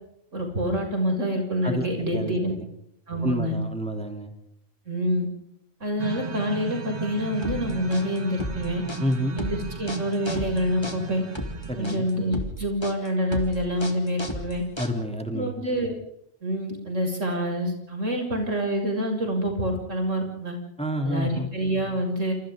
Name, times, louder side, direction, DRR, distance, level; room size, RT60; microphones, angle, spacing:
voice 1, 0.3-2.5 3.1-3.5 4.9-5.3 5.8-8.8 9.4-11.2 11.8-14.6 15.3-15.9 16.4-20.6 21.0-22.3, equal, 70° right, 2 dB, 7.4 m, -27 dB
voice 2, 3.2-4.3 9.0-9.3 11.7-12.0 14.8-15.5 20.8-21.5, equal, 5° left, 4 dB, 3.2 m, -28 dB
sound 1, 6.0-12.4, right 4 dB, 35° right, 1.4 m, -35 dB
sound 2, 7.4-15.3, equal, 20° left, 3.0 m, -34 dB
28.5 x 28.5 x 3.8 m, 0.76 s
omnidirectional pair, 1.3 m